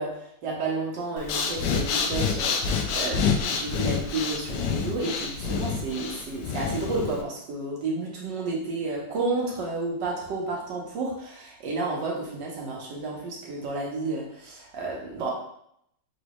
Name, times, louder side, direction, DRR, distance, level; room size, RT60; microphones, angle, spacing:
voice 1, 0.0-15.3, right 3 dB, 70° right, -2 dB, 1.7 m, -31 dB
Breathing, 1.2-7.2, left 6 dB, 75° left, 1.1 m, -27 dB
4.1 x 3.2 x 3.0 m, 0.72 s
omnidirectional pair, 2.0 m